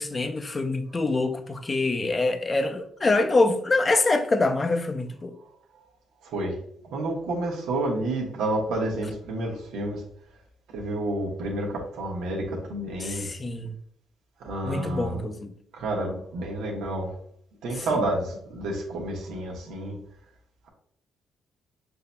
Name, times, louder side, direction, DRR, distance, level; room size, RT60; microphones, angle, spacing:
voice 1, 0.0-5.3 13.0-13.7 14.6-15.5, left 2 dB, 25° left, 0.5 m, -25 dB
voice 2, 6.2-6.6 6.9-10.0 10.7-13.3 14.4-15.2 15.7-17.1 17.6-20.0, right 1 dB, 80° right, 1.1 m, -29 dB
6.6 x 2.7 x 2.2 m
cardioid pair, 90°, 0 cm